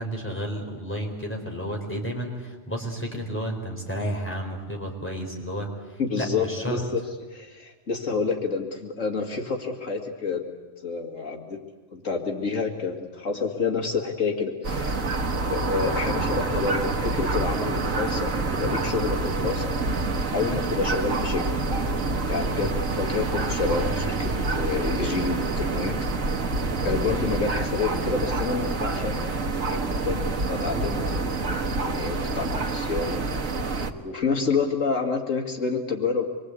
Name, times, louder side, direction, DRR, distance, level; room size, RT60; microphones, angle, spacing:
voice 1, 0.0-5.7 6.2-6.8 20.4-20.6 22.5-22.7 27.1-27.2, equal, 10° left, 0 dB, 4.4 m, -31 dB
voice 2, 6.0-7.0 7.3-10.4 10.8-11.6 11.9-15.0 15.4-19.7 20.3-21.5 22.3-26.0 26.8-30.2 30.5-33.2 34.0-36.3, left 4 dB, 75° left, 2 dB, 2.6 m, -28 dB
sound 1, 14.6-33.9, right 3 dB, 85° right, 1.8 m, -27 dB
26.0 x 23.5 x 8.3 m, 1.3 s
omnidirectional pair, 1.3 m